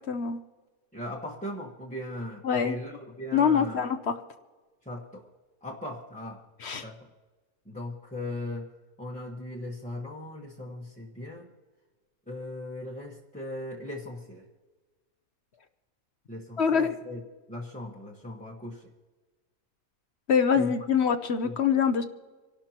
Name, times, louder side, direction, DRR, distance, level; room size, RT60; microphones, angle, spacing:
voice 1, 0.1-0.4 2.4-2.7 3.3-4.0 6.6-6.9 16.6-16.9 20.3-22.0, left 7 dB, 50° left, 9 dB, 0.9 m, -24 dB
voice 2, 0.9-3.8 4.8-5.3 5.6-6.4 6.8-7.1 7.6-8.7 9.0-11.5 12.3-14.4 16.3-17.2 17.5-18.9 20.5-20.7 21.4-21.5, left 1 dB, 5° left, -4 dB, 1.2 m, -38 dB
27.0 x 12.0 x 2.9 m, 1.3 s
omnidirectional pair, 1.6 m